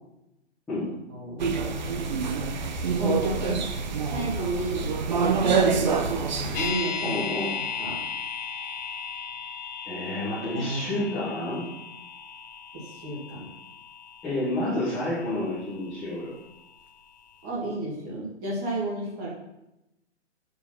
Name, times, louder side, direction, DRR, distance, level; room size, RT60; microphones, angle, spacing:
voice 1, 1.1-1.6 2.9-3.6 4.1-4.9 5.3-7.2 7.8-8.0 10.5-11.0 12.7-13.5 17.4-19.3, right 1 dB, 15° right, -5 dB, 1.7 m, -32 dB
sound 1, 1.4-6.7, right 5 dB, 40° right, 0.7 m, -26 dB
sound 2, 6.5-16.6 16.9-17.0, left 6 dB, 40° left, 0.6 m, -36 dB
voice 2, 7.0-7.5 9.8-11.7 14.2-16.3, left 1 dB, 5° left, -13 dB, 0.8 m, -29 dB
6.3 x 5.3 x 5.5 m, 0.90 s
hypercardioid pair, 170°, 35 cm